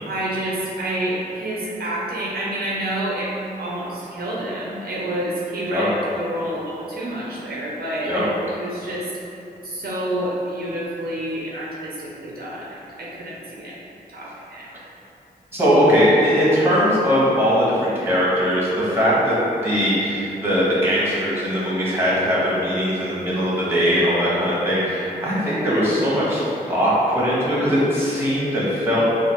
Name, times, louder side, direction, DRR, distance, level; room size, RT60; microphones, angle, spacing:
voice 1, 0.1-3.3 3.6-5.9 6.1-8.2 8.5-9.1 9.6-13.7 14.1-14.7, right 1 dB, 70° right, -5 dB, 0.6 m, -28 dB
voice 2, 15.5-19.3 19.6-26.4 26.7-29.0, equal, 15° right, -8 dB, 1.2 m, -20 dB
4.1 x 2.3 x 3.0 m, 2.8 s
cardioid pair, 75°, 16 cm